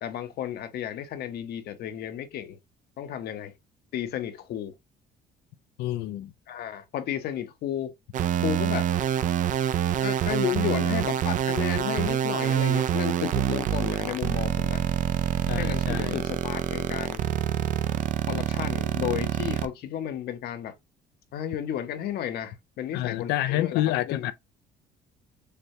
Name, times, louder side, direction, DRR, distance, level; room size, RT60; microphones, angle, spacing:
voice 1, 0.0-2.6 3.0-3.5 3.9-4.7 6.5-7.9 8.4-8.9 10.0-14.8 15.6-17.2 18.3-20.7 21.3-24.3, left 10 dB, 70° left, 0.8 m, -33 dB
voice 2, 5.8-6.3 15.5-16.2 22.9-24.3, left 14 dB, 85° left, 0.4 m, -28 dB
sound 1, 8.1-19.7, right 10 dB, 50° right, 0.4 m, -26 dB
6.7 x 2.3 x 2.7 m
cardioid pair, 110°, 17 cm